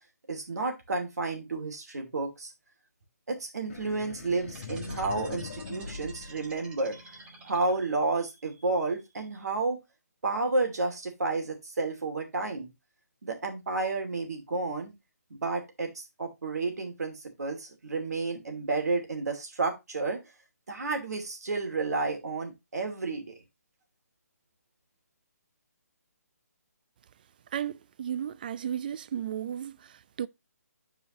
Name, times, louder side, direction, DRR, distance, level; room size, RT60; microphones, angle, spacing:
voice 1, 0.3-2.5 3.3-9.8 10.2-12.7 13.2-14.9 15.3-20.2 20.7-23.4, right 3 dB, 70° right, 2.6 m, -31 dB
sound 1, 3.7-7.2, left 5 dB, 45° left, 1.5 m, -42 dB
sound 2, 4.5-8.0, right 3 dB, 10° right, 1.1 m, -50 dB
voice 2, 27.5-30.3, right 9 dB, 30° right, 0.3 m, -34 dB
9.4 x 4.9 x 3.0 m
hypercardioid pair, 160°, 9 cm